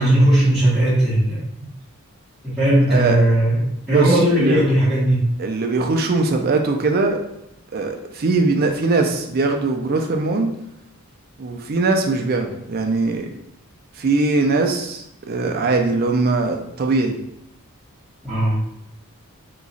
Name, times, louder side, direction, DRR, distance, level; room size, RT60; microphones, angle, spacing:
voice 1, 0.0-1.4 2.4-5.2 18.2-18.6, right 1 dB, ahead, -12 dB, 1.1 m, -17 dB
voice 2, 3.9-4.6 5.4-7.2 7.7-10.5 11.4-13.3 14.0-17.2, right 3 dB, 45° right, 4 dB, 0.4 m, -21 dB
3.0 x 2.4 x 3.9 m, 0.79 s
head